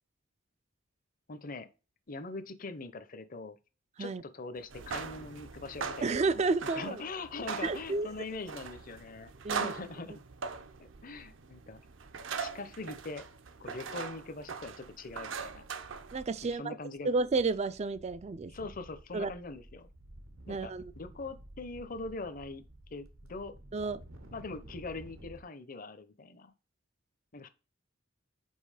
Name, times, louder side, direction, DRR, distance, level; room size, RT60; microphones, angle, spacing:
voice 1, 1.3-1.7 2.1-3.6 4.0-6.2 6.6-10.2 10.8-11.8 12.4-13.2 13.6-15.7 16.5-17.1 18.5-19.9 20.5-22.6 22.9-23.5 24.3-26.5 27.3-27.5, left 3 dB, 40° left, 0.7 m, -42 dB
sound 1, 4.6-16.5, right 5 dB, 65° right, 0.7 m, -41 dB
voice 2, 6.0-7.0 7.6-8.1 9.4-9.7 16.1-16.8 17.0-18.5 19.1-19.3 20.5-20.9 23.7-24.0, right 3 dB, 30° right, 0.3 m, -31 dB
sound 2, 16.6-16.7 17.0-25.4, right 1 dB, 85° right, 1.2 m, -52 dB
5.5 x 4.7 x 4.9 m
head